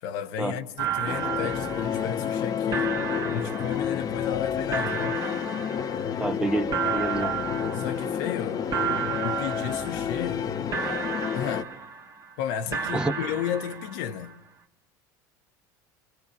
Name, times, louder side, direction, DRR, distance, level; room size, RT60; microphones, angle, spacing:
voice 1, 0.0-3.0 3.3-5.2 7.7-8.7 9.2-10.5 11.3-11.7 12.4-14.4, left 9 dB, 75° left, 1.2 m, -33 dB
sound 1, 0.8-2.4 2.7-4.4 4.7-6.3 6.7-8.4 8.7-10.4 10.7-12.3 12.7-14.3, right 8 dB, 35° right, 1.7 m, -33 dB
sound 2, 1.1-11.6, left 8 dB, 35° left, 0.9 m, -30 dB
voice 2, 6.2-7.3 12.9-13.1, right 2 dB, 10° right, 1.2 m, -28 dB
24.5 x 24.5 x 7.2 m
supercardioid pair, 100°, 10 cm